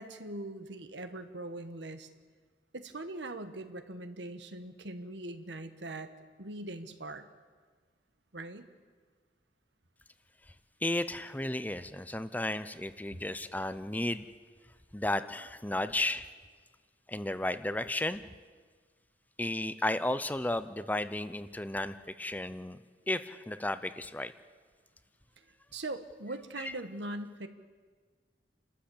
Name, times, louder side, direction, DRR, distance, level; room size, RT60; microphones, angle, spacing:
voice 1, 0.0-2.1 2.7-6.1 6.4-7.3 8.3-8.6 25.7-27.5, right 2 dB, 85° right, 8 dB, 1.5 m, -41 dB
voice 2, 10.8-14.3 14.9-16.3 17.1-18.2 19.4-22.8 23.1-24.3 26.6-26.7, left 1 dB, 10° left, 12 dB, 0.6 m, -33 dB
29.0 x 13.0 x 8.7 m, 1.5 s
head